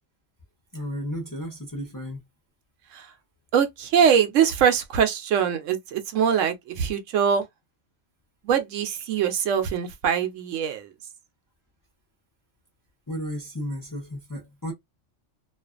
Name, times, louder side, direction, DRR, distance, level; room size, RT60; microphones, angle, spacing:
voice 1, 0.7-2.2 13.1-14.7, equal, 20° left, 0.5 m, -33 dB
voice 2, 3.5-7.4 8.4-10.9, right 8 dB, 80° right, 0.9 m, -23 dB
2.4 x 2.4 x 2.3 m
omnidirectional pair, 1.3 m